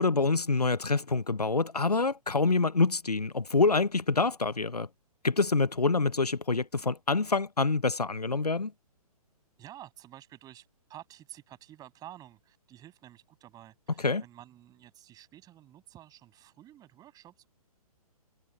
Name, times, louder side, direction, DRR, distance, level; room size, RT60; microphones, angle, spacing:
voice 1, 0.0-4.9 5.2-8.7 14.0-14.2, left 3 dB, 90° left, 0.9 m, -26 dB
voice 2, 9.6-17.5, right 13 dB, 20° right, 7.0 m, -51 dB
figure-of-eight pair, 125°, 19 cm